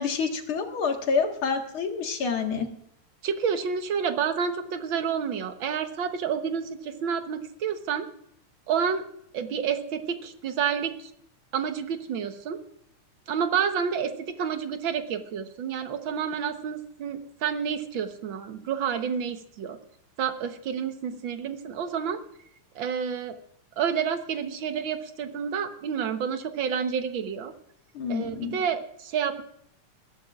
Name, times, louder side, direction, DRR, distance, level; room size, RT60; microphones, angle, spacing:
voice 1, 0.0-2.7 27.9-28.6, left 5 dB, 50° left, 3 dB, 2.2 m, -28 dB
voice 2, 3.2-8.1 8.7-9.0 9.3-11.1 11.5-12.6 13.3-19.8 20.2-22.2 22.7-23.4 23.8-27.5 28.1-29.4, right 7 dB, 60° right, 7 dB, 1.3 m, -29 dB
21.0 x 15.5 x 2.4 m, 0.70 s
omnidirectional pair, 3.5 m